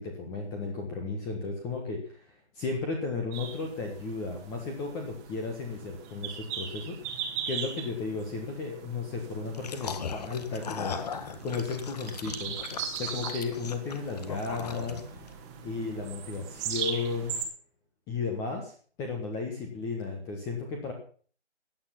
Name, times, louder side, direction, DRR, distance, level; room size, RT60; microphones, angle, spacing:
voice 1, 0.0-2.3 2.5-7.0 7.5-10.9 11.4-12.6 13.0-15.0 15.6-17.3 18.1-18.7 19.0-20.9, left 4 dB, 10° left, 2 dB, 1.3 m, -34 dB
sound 1, 3.3-17.4, right 7 dB, 15° right, 1.8 m, -40 dB
sound 2, 9.5-15.3, left 6 dB, 35° left, 1.7 m, -38 dB
16.0 x 9.7 x 5.9 m, 0.44 s
figure-of-eight pair, 150°, 35 cm